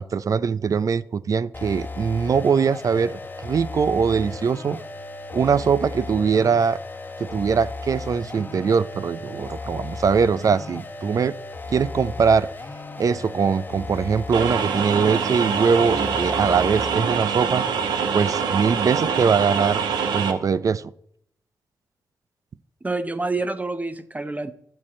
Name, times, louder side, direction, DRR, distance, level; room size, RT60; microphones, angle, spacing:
voice 1, 0.0-4.8 5.3-6.8 7.2-11.4 11.7-12.5 13.0-17.6 18.1-19.8 20.1-20.9, right 6 dB, 50° right, 17 dB, 0.4 m, -22 dB
sound 1, 1.5-17.0, left 3 dB, 25° left, 1.1 m, -35 dB
sound 2, 14.3-20.3, right 6 dB, 90° right, 1.0 m, -24 dB
voice 2, 22.8-24.5, right 3 dB, 20° right, 11 dB, 0.8 m, -27 dB
12.0 x 7.6 x 4.3 m, 0.69 s
cardioid pair, 75°, 7 cm